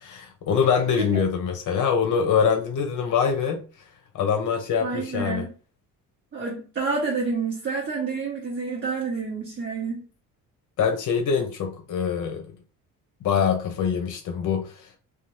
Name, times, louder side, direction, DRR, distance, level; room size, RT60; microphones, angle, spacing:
voice 1, 0.0-3.7 4.1-5.5 10.8-12.5 13.2-14.9, left 6 dB, 60° left, 0.8 m, -24 dB
voice 2, 4.8-5.5 6.3-10.1, right 4 dB, 35° right, 1.0 m, -29 dB
2.6 x 2.4 x 3.1 m
cardioid pair, 105°, 35 cm